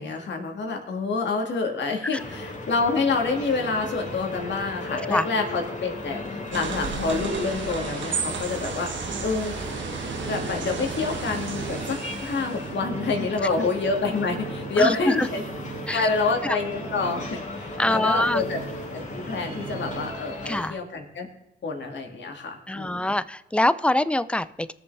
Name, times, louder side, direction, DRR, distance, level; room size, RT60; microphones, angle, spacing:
voice 1, 0.0-8.9 9.2-9.5 10.2-15.4 15.9-18.6 18.9-21.3 21.6-23.1, left 3 dB, 70° left, 3 dB, 2.2 m, -27 dB
sound 1, 2.1-20.7, left 2 dB, 40° left, 2.7 m, -36 dB
sound 2, 6.5-12.8, right 5 dB, 75° right, 1.2 m, -33 dB
sound 3, 9.6-20.1, right 6 dB, 55° right, 1.7 m, -40 dB
voice 2, 14.8-15.3 15.9-16.1 16.4-16.6 17.8-18.4 20.5-20.8 22.7-24.7, left 1 dB, 5° left, 15 dB, 0.5 m, -24 dB
19.0 x 6.9 x 3.4 m, 0.91 s
cardioid pair, 60°, 20 cm